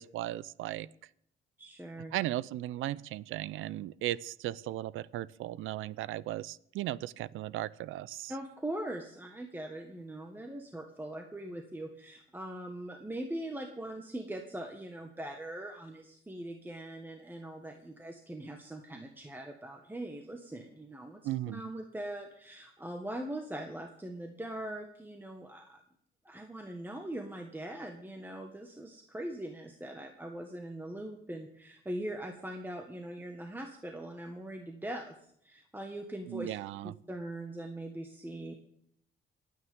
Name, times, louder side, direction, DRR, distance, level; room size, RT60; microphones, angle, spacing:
voice 1, 0.1-0.9 2.1-8.3 21.2-21.6 36.3-36.9, right 14 dB, 85° right, 20 dB, 0.5 m, -36 dB
voice 2, 1.6-2.2 8.3-21.2 21.5-25.8 26.2-35.2 35.4-36.5 36.8-38.6, right 1 dB, 10° right, 4 dB, 1.6 m, -41 dB
27.0 x 9.4 x 3.7 m, 0.71 s
cardioid pair, 90°, 20 cm